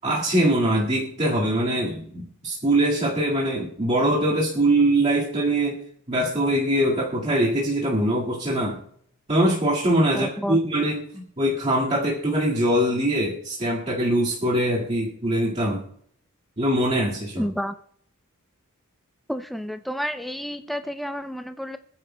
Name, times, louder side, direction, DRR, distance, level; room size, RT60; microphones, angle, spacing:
voice 1, 0.0-5.8 6.1-8.8 9.3-15.8 16.6-17.4, right 1 dB, 30° right, -5 dB, 1.9 m, -23 dB
voice 2, 10.1-10.6 17.4-17.7 19.3-21.8, equal, ahead, 8 dB, 0.4 m, -30 dB
26.0 x 10.0 x 2.2 m, 0.65 s
head